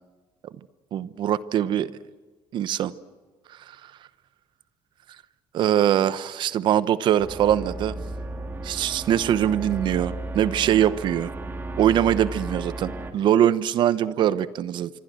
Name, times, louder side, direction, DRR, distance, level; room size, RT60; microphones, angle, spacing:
voice 1, 0.9-1.9 2.5-2.9 5.5-7.9 8.6-11.3 11.8-14.9, right 10 dB, 60° right, 16 dB, 1.0 m, -22 dB
sound 1, 7.2-13.1, right 2 dB, 25° right, 3.0 m, -34 dB
26.0 x 25.0 x 7.6 m, 1.4 s
cardioid pair, 120°, 9 cm